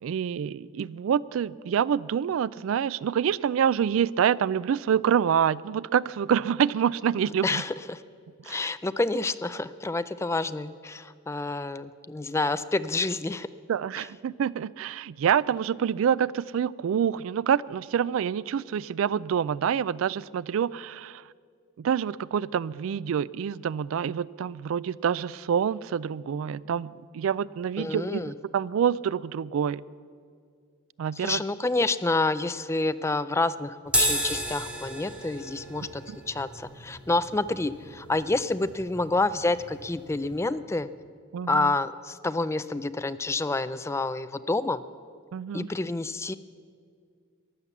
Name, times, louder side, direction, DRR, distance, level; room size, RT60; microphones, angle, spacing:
voice 1, 0.0-7.6 8.5-8.7 13.7-21.2 21.8-28.2 28.5-29.8 31.0-31.4 41.3-41.7 45.3-45.7, right 8 dB, 70° right, 21 dB, 0.3 m, -27 dB
voice 2, 7.4-8.0 8.4-13.5 14.0-14.1 27.8-28.3 31.2-40.9 41.5-44.8 45.5-46.3, left 2 dB, 15° left, 13 dB, 0.3 m, -28 dB
sound 1, 33.9-40.4, equal, 5° right, 1.8 m, -33 dB
15.0 x 11.0 x 7.1 m, 2.2 s
head